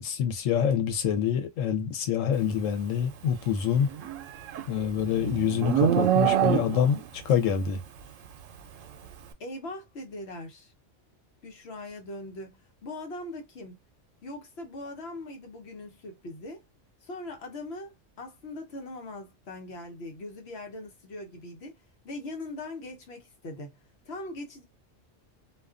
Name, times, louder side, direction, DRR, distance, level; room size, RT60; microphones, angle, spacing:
voice 1, 0.0-3.9 4.7-7.8, left 8 dB, 90° left, 1.1 m, -26 dB
Livestock farm animals working animals, 3.8-7.1, right 10 dB, 85° right, 0.9 m, -25 dB
voice 2, 9.4-10.7 11.4-13.8 14.2-16.6 17.0-21.8 22.0-23.8 24.1-24.6, left 2 dB, 60° left, 1.0 m, -41 dB
2.4 x 2.3 x 2.4 m
omnidirectional pair, 1.3 m